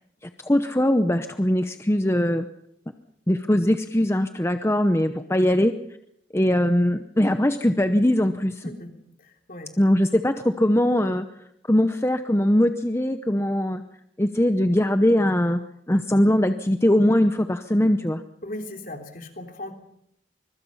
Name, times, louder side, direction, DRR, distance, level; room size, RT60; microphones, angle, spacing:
voice 1, 0.2-2.5 3.3-5.7 6.3-8.6 9.8-11.2 11.7-13.8 14.2-15.6 15.9-18.2, left 1 dB, 15° left, 8 dB, 0.8 m, -21 dB
voice 2, 9.2-9.7 18.4-19.7, left 1 dB, 50° left, 4 dB, 3.4 m, -37 dB
25.0 x 23.0 x 5.6 m, 0.76 s
head